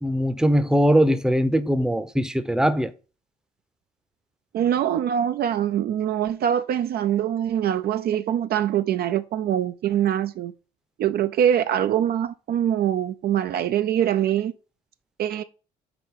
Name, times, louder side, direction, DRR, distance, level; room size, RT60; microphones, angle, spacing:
voice 1, 0.0-2.9, equal, 5° right, 0.7 m, -21 dB
voice 2, 4.5-10.5 11.0-14.5 15.2-15.4, right 10 dB, 50° right, 0.5 m, -23 dB
4.9 x 4.3 x 5.3 m
figure-of-eight pair, 50°, 21 cm